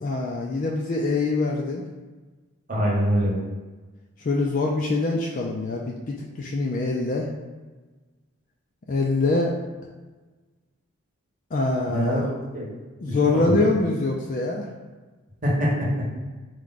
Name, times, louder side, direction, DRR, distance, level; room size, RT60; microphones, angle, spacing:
voice 1, 0.0-1.8 4.2-7.3 8.9-9.5 11.5-12.2 13.0-14.7, left 3 dB, 40° left, -1 dB, 0.3 m, -24 dB
voice 2, 2.7-3.4 11.9-12.7 13.1-13.6 15.4-16.3, equal, 40° right, -4 dB, 0.9 m, -24 dB
4.6 x 2.2 x 3.9 m, 1.3 s
head